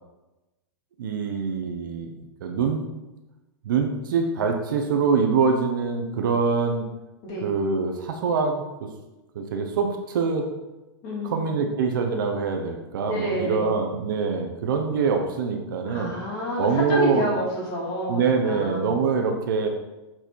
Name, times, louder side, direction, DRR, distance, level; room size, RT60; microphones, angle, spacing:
voice 1, 1.0-2.1 2.4-2.8 3.6-6.9 7.4-8.6 9.3-10.5 11.2-16.1 16.6-17.3 18.1-19.7, right 5 dB, 50° right, 4 dB, 0.9 m, -24 dB
voice 2, 11.0-11.5 13.0-13.7 15.9-19.0, equal, 25° left, -4 dB, 2.2 m, -29 dB
7.8 x 4.3 x 4.6 m, 1.0 s
supercardioid pair, 175°, 14 cm